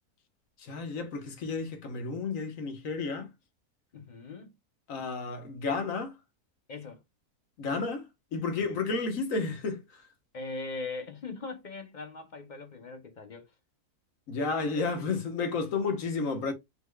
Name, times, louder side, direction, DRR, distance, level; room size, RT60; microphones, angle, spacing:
voice 1, 0.6-3.3 4.9-6.1 7.6-8.0 8.3-10.1 14.3-16.5, left 4 dB, 60° left, 1.5 m, -32 dB
voice 2, 3.9-4.5 6.7-7.0 8.6-8.8 10.3-13.5 14.7-15.1, left 3 dB, 45° left, 0.6 m, -41 dB
5.6 x 3.9 x 2.2 m
omnidirectional pair, 1.6 m